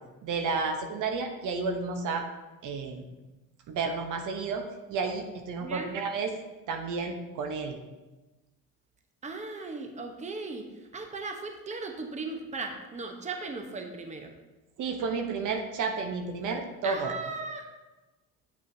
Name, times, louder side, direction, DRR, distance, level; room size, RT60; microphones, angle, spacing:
voice 1, 0.2-2.3 2.6-3.0 3.7-4.6 4.9-6.3 6.7-7.8 14.8-17.1, right 4 dB, 60° right, 4 dB, 0.9 m, -31 dB
voice 2, 5.6-5.9 9.2-14.4 16.8-17.7, right 3 dB, 20° right, 4 dB, 0.9 m, -37 dB
7.8 x 6.4 x 2.7 m, 1.1 s
supercardioid pair, 90°, 34 cm